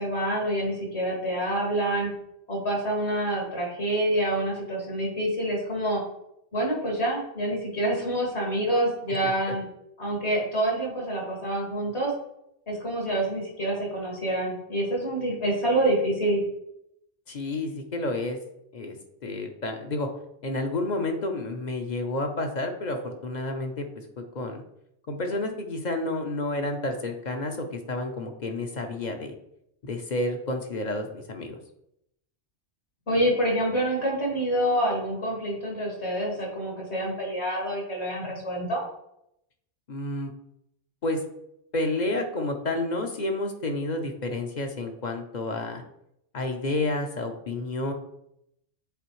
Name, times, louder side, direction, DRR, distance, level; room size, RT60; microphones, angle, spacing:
voice 1, 0.0-2.1 2.5-6.0 6.5-9.6 10.0-12.1 12.7-16.4 33.1-38.8, right 1 dB, 75° left, -2 dB, 2.4 m, -27 dB
voice 2, 17.3-18.4 18.7-19.0 19.2-20.1 20.4-24.6 25.1-29.3 29.8-31.6 39.9-40.3 41.0-41.2 41.7-45.8 46.3-47.9, left 2 dB, 45° left, 4 dB, 0.7 m, -30 dB
8.2 x 3.8 x 3.1 m, 0.78 s
omnidirectional pair, 1.2 m